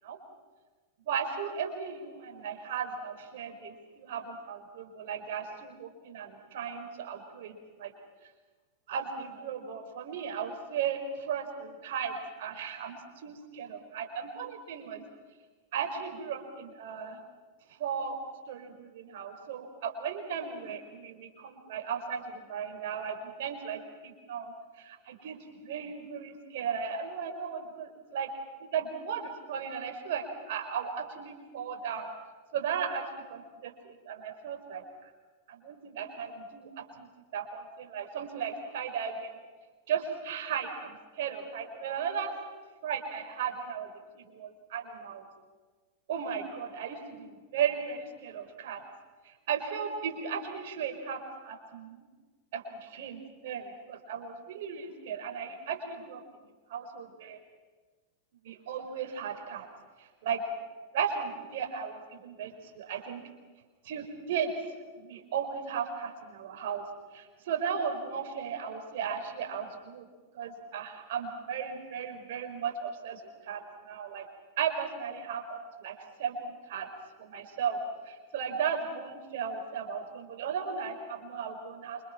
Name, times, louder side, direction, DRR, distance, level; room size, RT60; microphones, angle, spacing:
voice 1, 1.1-7.9 8.9-15.0 15.7-17.2 17.8-18.2 18.5-25.4 25.6-28.3 28.6-32.1 32.5-34.8 35.5-37.1 37.3-39.3 39.9-42.3 42.8-45.3 46.1-48.9 49.3-52.0 52.5-56.2 56.7-57.4 58.4-59.7 60.0-60.4 60.9-63.2 63.8-64.5 65.0-66.8 67.1-70.1 70.3-74.3 74.6-76.9 77.2-77.8 78.1-82.0, right 7 dB, 55° right, 4 dB, 5.2 m, -36 dB
28.5 x 26.5 x 6.0 m, 1.3 s
figure-of-eight pair, 90°, 0 cm